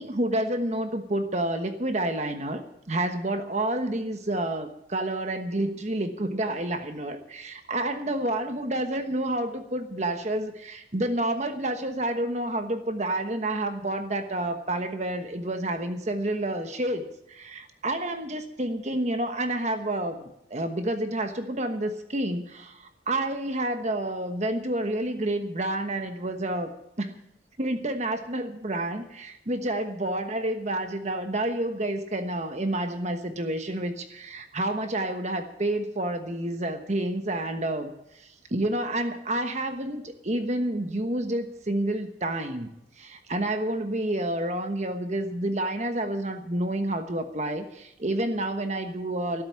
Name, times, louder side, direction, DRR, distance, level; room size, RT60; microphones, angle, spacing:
voice 1, 0.0-26.7 27.0-27.1 27.6-42.7 43.0-49.4, right 1 dB, 35° right, 7 dB, 1.1 m, -29 dB
13.0 x 11.5 x 7.4 m, 0.80 s
head